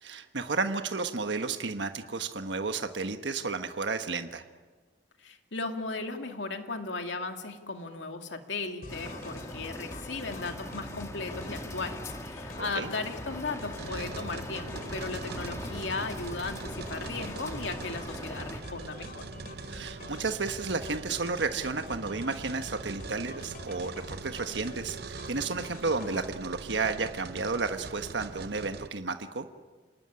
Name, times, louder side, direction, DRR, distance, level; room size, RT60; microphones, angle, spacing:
voice 1, 0.0-4.4 12.6-12.9 19.7-29.5, right 4 dB, 75° right, 7 dB, 1.3 m, -32 dB
voice 2, 5.2-19.2, left 3 dB, 90° left, 5 dB, 2.5 m, -36 dB
sound 1, 8.8-26.3, left 1 dB, 55° left, 2.5 m, -46 dB
sound 2, 8.9-18.6, left 1 dB, 15° left, 1.8 m, -41 dB
sound 3, 13.8-28.9, right 4 dB, 60° right, 0.7 m, -43 dB
28.0 x 19.5 x 9.8 m, 1.4 s
head